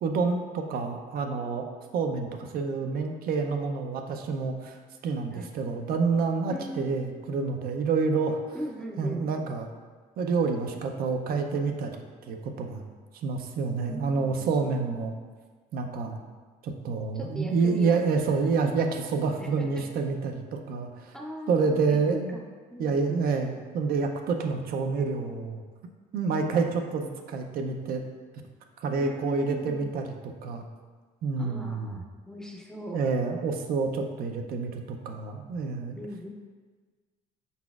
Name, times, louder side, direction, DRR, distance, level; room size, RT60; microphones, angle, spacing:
voice 1, 0.0-1.6 1.9-4.8 5.0-8.4 9.0-9.7 10.2-12.8 13.2-15.1 15.7-16.2 16.6-21.1 21.5-22.4 22.8-25.6 26.1-28.0 28.8-30.7 31.2-32.0 32.9-36.0, right 4 dB, 60° right, 4 dB, 0.5 m, -28 dB
voice 2, 6.5-7.0 8.5-9.2 13.9-14.5 17.1-18.0 19.4-19.9 21.1-22.4 22.7-23.2 29.0-29.9 31.4-33.0 36.0-36.3, equal, 5° left, -1 dB, 0.4 m, -39 dB
4.8 x 4.0 x 2.3 m, 1.4 s
cardioid pair, 110°, 17 cm